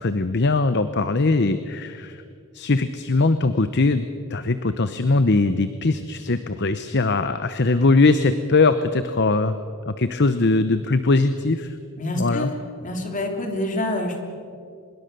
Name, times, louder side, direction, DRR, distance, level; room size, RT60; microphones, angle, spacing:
voice 1, 0.0-2.2 2.5-9.6 9.9-11.8 12.1-12.5, left 3 dB, 50° left, 11 dB, 0.8 m, -21 dB
voice 2, 12.0-12.5 12.8-14.2, left 1 dB, 35° left, 3 dB, 3.3 m, -27 dB
25.5 x 21.5 x 6.8 m, 2.3 s
head